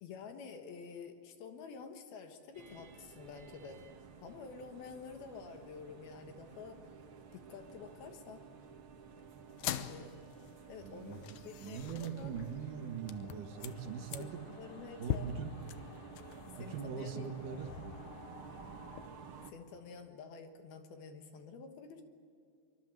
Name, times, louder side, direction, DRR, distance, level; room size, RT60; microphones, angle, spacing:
voice 1, 0.0-3.8 4.2-6.9 7.3-8.4 9.9-10.2 10.7-11.2 11.4-12.3 14.2-15.3 16.5-17.2 19.5-22.0, left 5 dB, 70° left, 6 dB, 3.1 m, -49 dB
sound 1, 2.5-19.5, right 6 dB, 90° right, 1.2 m, -53 dB
sound 2, 9.5-19.1, left 10 dB, 85° left, 1.8 m, -44 dB
voice 2, 10.8-14.4 15.0-15.7 16.6-17.7, right 7 dB, 60° right, 6 dB, 2.6 m, -42 dB
24.0 x 23.5 x 7.7 m, 2.4 s
omnidirectional pair, 4.9 m